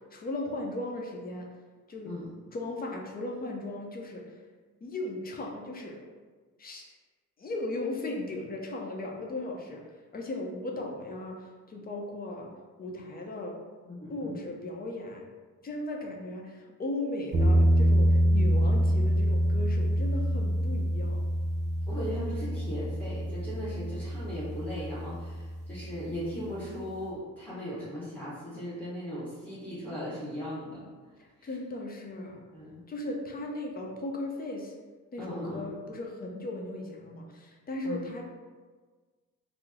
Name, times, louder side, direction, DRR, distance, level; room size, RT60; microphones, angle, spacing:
voice 1, 0.1-1.5 1.9-2.1 2.5-4.2 4.8-6.0 6.6-6.8 7.4-9.8 10.1-12.5 12.8-13.5 14.1-15.3 15.6-21.2 31.4-32.4 32.9-34.7 35.1-38.2, left 2 dB, 30° left, 0 dB, 0.6 m, -37 dB
voice 2, 13.8-14.4 21.9-30.9 31.4-31.5 32.5-32.9 35.2-35.7 37.8-38.0, equal, 5° left, -11 dB, 1.0 m, -38 dB
sound 1, 17.3-26.3, equal, 25° right, 0.5 m, -26 dB
3.0 x 2.0 x 3.6 m, 1.4 s
cardioid pair, 90°, 30 cm